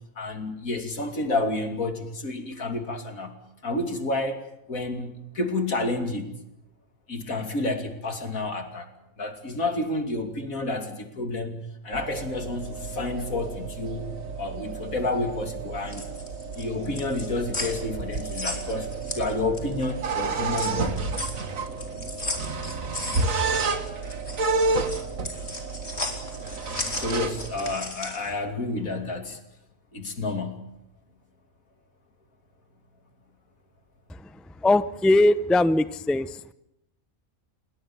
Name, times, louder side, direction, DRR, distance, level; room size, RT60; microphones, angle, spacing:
voice 1, 0.2-3.4 3.6-6.4 7.1-8.9 9.2-14.1 14.4-16.1 16.5-21.1 26.9-29.4 29.9-30.6, left 2 dB, 80° left, 6 dB, 3.2 m, -30 dB
sound 1, 11.9-27.7, right 3 dB, 70° right, 2.2 m, -31 dB
sound 2, 15.7-19.8 20.2-28.3, left 2 dB, 50° left, 4.1 m, -36 dB
voice 2, 34.1-36.5, left 2 dB, ahead, 14 dB, 0.5 m, -22 dB
27.5 x 22.0 x 7.3 m, 0.84 s
omnidirectional pair, 1.4 m